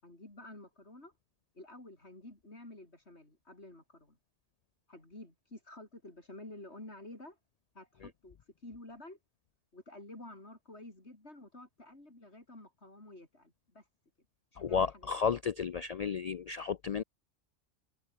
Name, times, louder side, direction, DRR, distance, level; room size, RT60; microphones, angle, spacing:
voice 1, 0.0-1.1 1.5-4.2 4.9-7.4 7.7-9.2 9.7-13.9 14.5-15.1, left 2 dB, 60° left, 5.9 m, -51 dB
voice 2, 14.6-17.0, left 6 dB, 90° left, 0.3 m, -32 dB
omnidirectional pair, 1.3 m